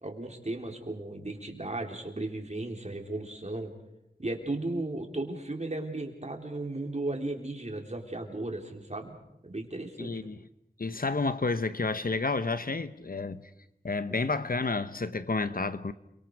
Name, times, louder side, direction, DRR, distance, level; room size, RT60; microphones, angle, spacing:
voice 1, 0.0-3.7 4.2-9.1 9.4-10.2 14.1-14.2, right 2 dB, 40° right, 3.7 m, -35 dB
voice 2, 10.0-10.4 10.8-13.4 13.8-15.9, left 3 dB, 60° left, 1.0 m, -30 dB
29.0 x 24.5 x 4.8 m
wide cardioid pair, 50°, 17 cm